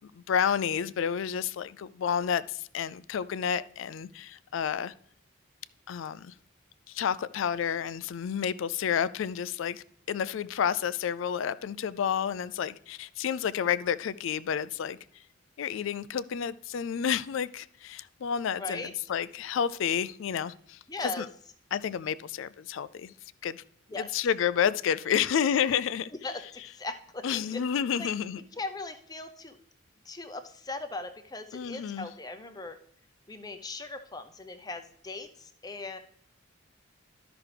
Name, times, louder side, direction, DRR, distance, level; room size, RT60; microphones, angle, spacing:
voice 1, 0.0-4.9 5.9-6.3 6.9-15.2 15.6-21.3 21.7-23.1 23.4-23.6 23.9-26.1 27.2-28.4 31.5-32.1, left 8 dB, 65° left, 0.3 m, -30 dB
voice 2, 18.6-18.9 20.9-21.3 23.9-24.1 26.2-26.4 26.7-27.6 28.0-28.1 28.6-29.6 30.1-32.8 33.3-36.0, left 3 dB, 20° left, 0.5 m, -38 dB
12.5 x 6.0 x 3.3 m
head